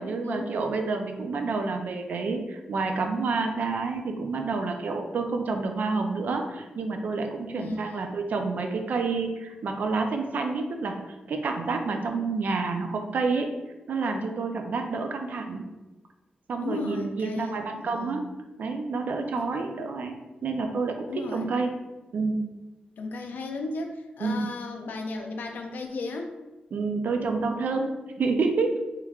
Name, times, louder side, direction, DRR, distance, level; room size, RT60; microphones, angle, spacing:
voice 1, 0.0-13.5 13.9-15.6 16.5-18.2 18.6-20.9 21.3-21.7 22.1-22.4 24.2-24.4 26.7-28.7, right 4 dB, 70° right, 4 dB, 0.4 m, -29 dB
voice 2, 7.5-8.1 16.6-18.3 19.3-19.9 21.1-21.6 23.0-26.3, left 3 dB, 85° left, 4 dB, 0.4 m, -35 dB
3.5 x 3.0 x 2.3 m, 1.1 s
wide cardioid pair, 150°, 3 cm